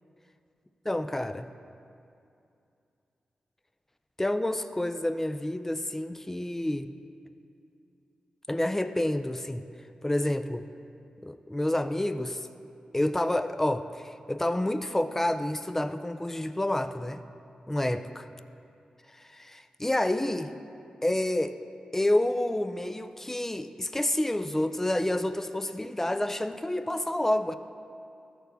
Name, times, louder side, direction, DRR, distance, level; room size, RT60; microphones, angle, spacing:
voice 1, 0.9-1.5 4.2-6.9 8.5-9.7 10.0-10.6 11.2-12.5 12.9-17.2 17.7-18.0 19.1-20.5 21.0-21.6 21.9-27.5, left 1 dB, 15° left, 10 dB, 0.4 m, -29 dB
13.5 x 4.5 x 4.0 m, 2.6 s
cardioid pair, 45°, 2 cm